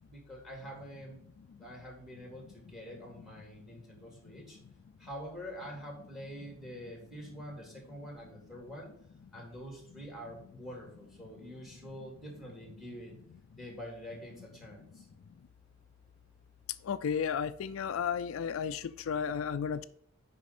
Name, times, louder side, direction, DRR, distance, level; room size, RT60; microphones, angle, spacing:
voice 1, 0.1-1.2 1.6-4.6 5.0-8.9 9.3-13.2 13.6-15.1, equal, ahead, 2.6 m, -46 dB
voice 2, 16.8-19.8, left 7 dB, 75° left, 0.4 m, -33 dB
8.2 x 5.3 x 4.2 m
head